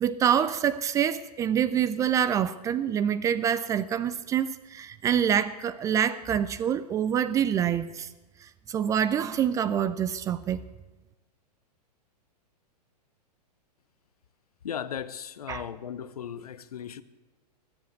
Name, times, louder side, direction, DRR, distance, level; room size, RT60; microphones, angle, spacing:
voice 1, 0.0-8.1 8.7-10.6 15.5-15.6, right 9 dB, 15° right, 0.4 m, -26 dB
voice 2, 14.6-17.0, left 8 dB, 65° left, 0.9 m, -36 dB
20.0 x 7.9 x 8.3 m
figure-of-eight pair, 105°, 21 cm